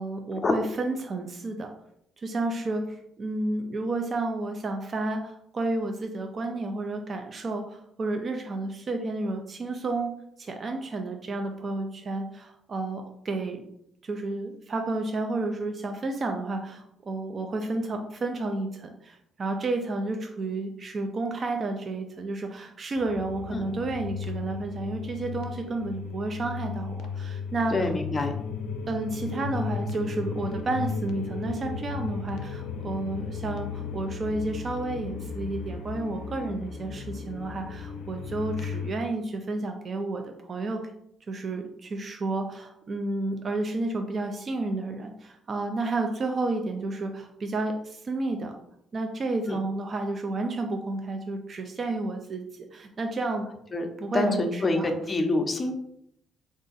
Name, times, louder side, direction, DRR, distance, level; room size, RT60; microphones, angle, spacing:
voice 1, 0.0-1.7 2.2-10.1 10.4-13.6 14.0-27.9 28.9-40.8 41.3-48.6 48.9-53.5 54.0-54.9, right 2 dB, 40° right, 4 dB, 0.4 m, -31 dB
sound 1, 23.0-38.9, left 5 dB, 85° left, 0.4 m, -35 dB
voice 2, 27.7-28.3 49.5-49.6 53.7-53.9 54.1-55.7, left 2 dB, 30° left, 5 dB, 0.6 m, -26 dB
3.7 x 2.5 x 3.9 m, 0.74 s
cardioid pair, 115°, 0 cm